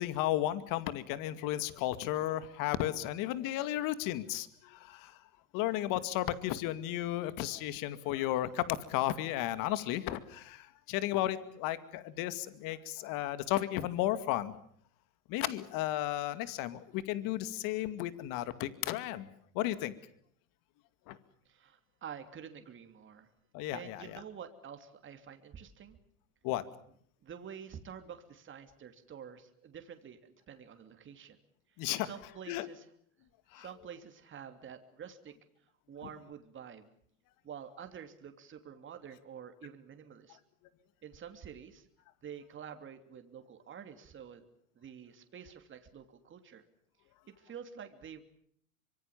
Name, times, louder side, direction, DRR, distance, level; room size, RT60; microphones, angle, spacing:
voice 1, 0.0-5.2 5.5-8.6 8.9-14.5 15.3-19.3 19.5-19.9 21.1-21.2 23.5-24.0 26.4-26.6 31.8-32.1 32.5-32.7 33.5-33.6, left 14 dB, 50° left, 12 dB, 2.3 m, -34 dB
voice 2, 21.4-23.3 23.7-26.0 27.2-31.4 32.0-32.9 33.5-35.3 35.9-36.9 37.4-40.4 41.0-41.9 42.2-44.4 44.7-46.6 47.3-48.2, right 8 dB, 30° right, 7 dB, 3.0 m, -48 dB
25.0 x 24.0 x 7.4 m, 0.64 s
hypercardioid pair, 105°, 42 cm